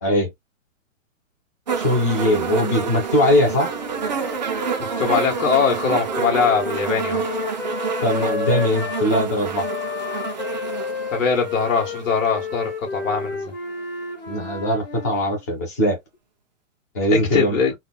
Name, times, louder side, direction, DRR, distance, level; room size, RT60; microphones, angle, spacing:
sound 1, 1.7-12.8 13.7-13.8, right 6 dB, 35° right, 0.5 m, -28 dB
voice 1, 1.8-3.7 8.0-9.7 14.3-16.0 16.9-17.6, left 1 dB, 15° left, 0.6 m, -20 dB
Wind instrument woodwind instrument, 3.6-9.1 9.5-15.4, left 5 dB, 45° left, 1.5 m, -31 dB
voice 2, 4.8-7.2 11.1-13.5 17.1-17.7, left 5 dB, 75° left, 1.7 m, -22 dB
3.8 x 2.3 x 2.3 m
hypercardioid pair, 175°, 40 cm